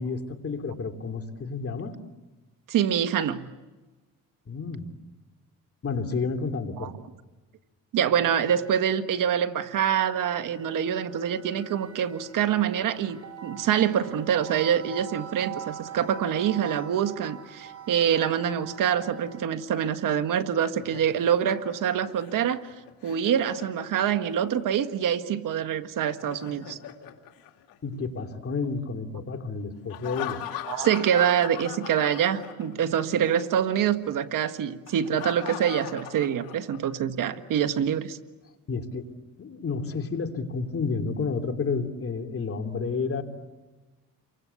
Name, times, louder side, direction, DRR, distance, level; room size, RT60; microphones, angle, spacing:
voice 1, 0.0-2.0 4.5-4.9 5.8-6.9 27.8-30.4 38.7-43.2, left 4 dB, 40° left, 3.1 m, -31 dB
voice 2, 2.7-3.4 6.8-6.9 7.9-22.6 23.0-26.8 30.7-38.2, right 9 dB, 65° right, 1.6 m, -25 dB
sound 1, 10.2-19.6, right 8 dB, 50° right, 4.9 m, -43 dB
Laughter, 20.3-24.4 26.1-28.2 29.9-33.0 33.2-33.4 34.9-37.0, left 11 dB, 85° left, 2.8 m, -40 dB
30.0 x 24.0 x 8.3 m
cardioid pair, 80°, 34 cm